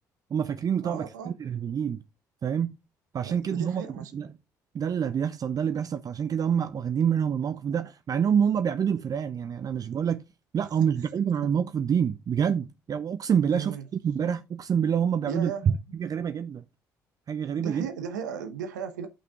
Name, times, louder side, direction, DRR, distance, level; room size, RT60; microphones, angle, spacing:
voice 1, 0.3-2.0 2.4-2.7 3.1-4.3 4.7-10.2 10.5-16.6 17.3-17.9, right 7 dB, 40° right, 0.6 m, -27 dB
voice 2, 0.8-1.3 3.2-4.1 10.8-10.9 13.5-13.9 15.2-15.7 17.6-19.1, right 7 dB, 80° right, 0.9 m, -36 dB
11.0 x 5.9 x 3.6 m
figure-of-eight pair, 50°, 10 cm